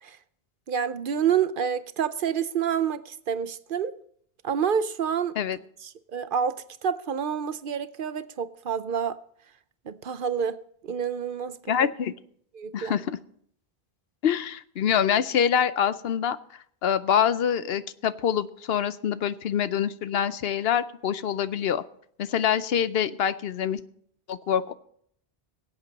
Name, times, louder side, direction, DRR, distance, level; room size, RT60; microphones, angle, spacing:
voice 1, 0.7-3.9 4.4-5.3 6.1-9.2 9.9-10.6 10.8-11.9 12.5-12.9, right 7 dB, 60° right, 0.8 m, -28 dB
voice 2, 11.7-12.2 12.7-13.2 14.2-16.4 16.8-21.8 22.2-23.8 24.3-24.7, left 8 dB, 75° left, 0.9 m, -25 dB
23.0 x 8.2 x 4.0 m
omnidirectional pair, 1.0 m